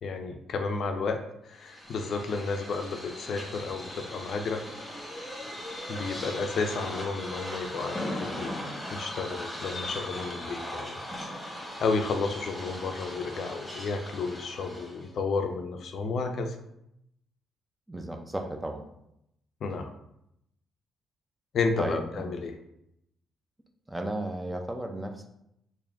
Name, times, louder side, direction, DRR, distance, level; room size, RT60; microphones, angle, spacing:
voice 1, 0.0-1.2 1.5-4.6 5.9-8.5 8.9-16.6 19.6-19.9 21.5-22.5, left 4 dB, 60° left, 6 dB, 0.4 m, -32 dB
sound 1, 1.5-15.1, equal, 10° left, 1.2 m, -40 dB
Fireworks, 1.8-13.5 13.9-14.2 14.5-14.6, left 2 dB, 30° left, 0.8 m, -43 dB
voice 2, 17.9-18.9 21.8-22.2 23.9-25.3, right 1 dB, 15° right, 4 dB, 0.5 m, -34 dB
3.6 x 2.6 x 3.5 m, 0.79 s
cardioid pair, 90°, 0 cm